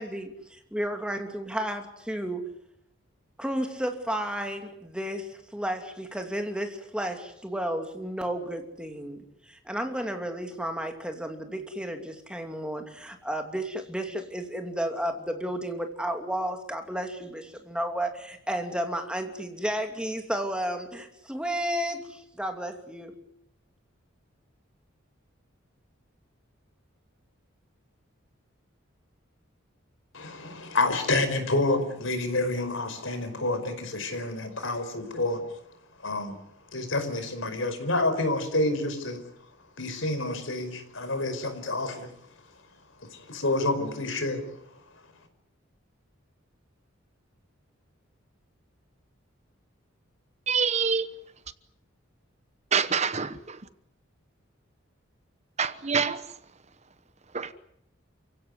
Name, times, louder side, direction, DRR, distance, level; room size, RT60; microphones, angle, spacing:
voice 1, 0.0-2.5 3.4-23.1, right 1 dB, 5° right, 2.7 m, -32 dB
voice 2, 30.1-35.5 36.0-36.4 36.7-39.2 39.8-42.1 43.1-44.4, left 2 dB, 70° left, 4.9 m, -28 dB
voice 3, 50.5-51.0 52.7-53.3 55.6-56.2 57.3-57.5, right 6 dB, 35° right, 1.0 m, -25 dB
29.5 x 16.5 x 9.7 m
head